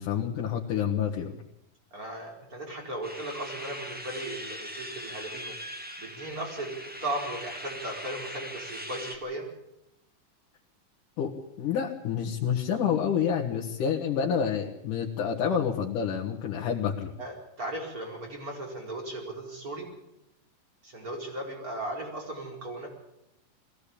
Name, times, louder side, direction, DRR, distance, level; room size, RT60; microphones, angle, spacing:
voice 1, 0.0-1.3 11.2-11.3 11.6-17.1, left 7 dB, 70° left, -1 dB, 3.0 m, -28 dB
voice 2, 1.9-5.5 6.0-9.5 17.2-19.9 20.8-22.9, right 1 dB, 25° right, 1 dB, 5.1 m, -37 dB
sound 1, 3.0-9.1, equal, 5° right, 1.1 m, -41 dB
22.5 x 16.0 x 8.5 m, 0.85 s
omnidirectional pair, 3.9 m